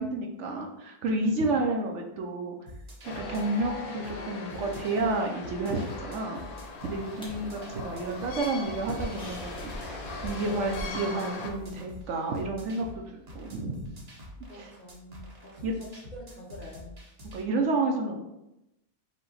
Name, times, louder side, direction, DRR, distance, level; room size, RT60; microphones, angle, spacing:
voice 1, 0.0-2.6 3.0-6.4 6.8-14.0 14.5-14.7 15.6-15.7 17.3-18.3, right 2 dB, 65° right, 2 dB, 0.8 m, -30 dB
sound 1, 2.7-17.4, equal, 35° right, 0.7 m, -46 dB
sound 2, 3.0-11.5, left 3 dB, 80° left, 1.3 m, -40 dB
sound 3, 6.6-11.8, equal, 5° left, 0.9 m, -44 dB
voice 2, 14.5-17.0, left 1 dB, 45° left, -4 dB, 0.6 m, -47 dB
5.4 x 2.2 x 3.9 m, 0.90 s
omnidirectional pair, 1.5 m